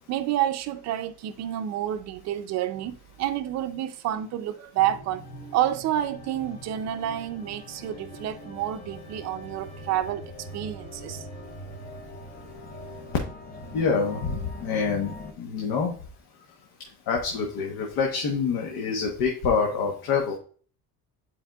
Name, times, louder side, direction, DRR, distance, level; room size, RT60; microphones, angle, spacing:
voice 1, 0.1-5.2 5.5-11.3, right 12 dB, 50° right, 0.5 m, -29 dB
sound 1, 4.8-15.3, left 1 dB, 25° left, 0.7 m, -42 dB
voice 2, 13.7-15.9 17.1-20.4, left 5 dB, 75° left, 1.1 m, -26 dB
9.8 x 4.5 x 2.3 m
cardioid pair, 175°, 35 cm